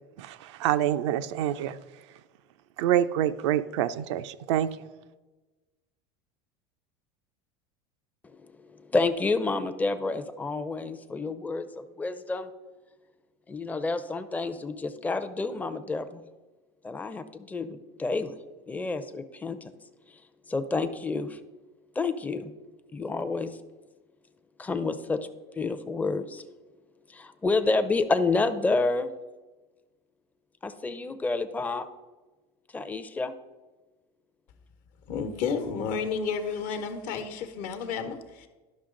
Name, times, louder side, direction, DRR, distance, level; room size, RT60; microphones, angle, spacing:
voice 1, 0.2-1.8 2.8-4.8, right 11 dB, 80° right, 11 dB, 0.5 m, -26 dB
voice 2, 8.3-12.5 13.5-16.2 16.8-18.4 18.7-19.7 20.5-21.4 22.0-22.5 22.9-23.6 24.6-25.3 25.6-26.4 27.1-29.1 30.6-31.8 32.7-33.3, left 3 dB, 10° left, 9 dB, 0.5 m, -29 dB
voice 3, 35.1-38.5, left 5 dB, 60° left, 7 dB, 1.1 m, -31 dB
11.5 x 5.7 x 3.8 m, 1.2 s
supercardioid pair, 120°, 15 cm